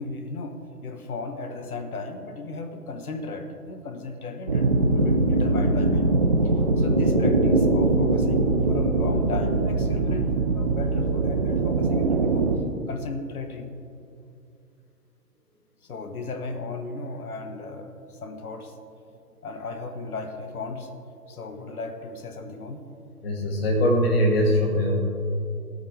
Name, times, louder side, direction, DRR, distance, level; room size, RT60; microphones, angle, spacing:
voice 1, 0.0-6.1 6.8-12.5 12.9-13.7 15.8-18.7 19.4-20.9 21.3-22.9, left 3 dB, 65° left, 6 dB, 1.3 m, -35 dB
sound 1, 4.5-12.6, right 2 dB, 25° right, 0.6 m, -22 dB
voice 2, 23.2-25.0, equal, 35° left, 0 dB, 2.2 m, -21 dB
16.5 x 9.2 x 3.4 m, 2.5 s
figure-of-eight pair, 135°, 49 cm